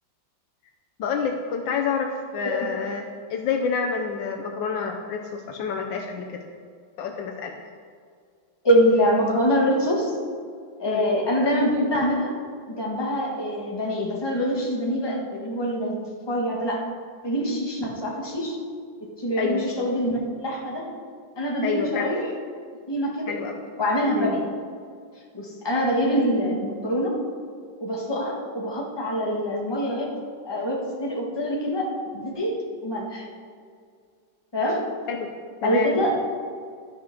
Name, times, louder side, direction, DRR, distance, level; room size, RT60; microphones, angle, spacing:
voice 1, 1.0-3.0 3.3-6.4 7.0-7.6 10.9-11.1 19.4-19.6 21.6-22.1 23.3-23.6 24.1-24.3 35.1-35.3 35.6-35.9, left 6 dB, 75° left, 2 dB, 1.4 m, -28 dB
voice 2, 8.6-10.1 10.8-12.3 12.7-16.0 16.3-16.8 17.2-18.6 19.2-20.9 21.4-22.3 22.9-23.3 23.8-24.4 25.3-27.1 27.8-30.1 30.4-31.8 32.1-32.5 32.8-33.3 34.5-34.8 35.6-36.1, equal, 15° left, -2 dB, 1.4 m, -24 dB
11.5 x 6.1 x 5.9 m, 2.1 s
omnidirectional pair, 2.1 m